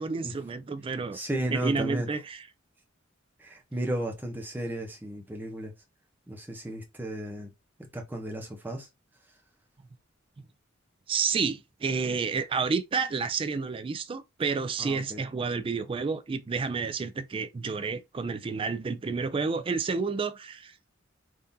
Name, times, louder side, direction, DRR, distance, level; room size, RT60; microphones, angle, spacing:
voice 1, 0.0-1.2 1.5-2.4 11.1-20.7, right 5 dB, 25° right, 0.3 m, -30 dB
voice 2, 1.1-2.1 3.4-5.7 6.3-7.5 7.9-8.9 14.8-15.2, right 1 dB, 10° right, 0.7 m, -33 dB
3.6 x 2.5 x 2.7 m
head